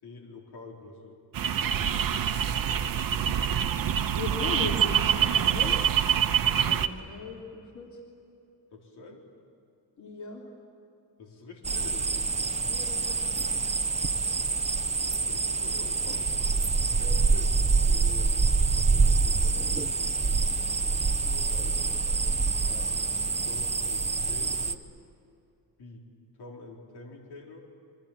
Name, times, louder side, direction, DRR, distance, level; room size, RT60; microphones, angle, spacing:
voice 1, 0.0-1.2 8.7-9.2 11.2-12.2 15.0-16.5 17.0-20.4 20.9-21.8 22.7-22.9 23.4-24.9 25.8-26.0 26.4-27.6, left 3 dB, 75° left, 0 dB, 4.3 m, -46 dB
sound 1, 1.3-6.9, right 9 dB, 55° right, 1.1 m, -25 dB
voice 2, 4.0-5.8 6.6-8.0 10.0-10.4 12.6-13.5, left 3 dB, 45° left, -1 dB, 3.5 m, -38 dB
sound 2, 11.6-24.7, right 4 dB, 15° right, 0.7 m, -26 dB
27.5 x 23.0 x 8.9 m, 2.5 s
wide cardioid pair, 180°, 40 cm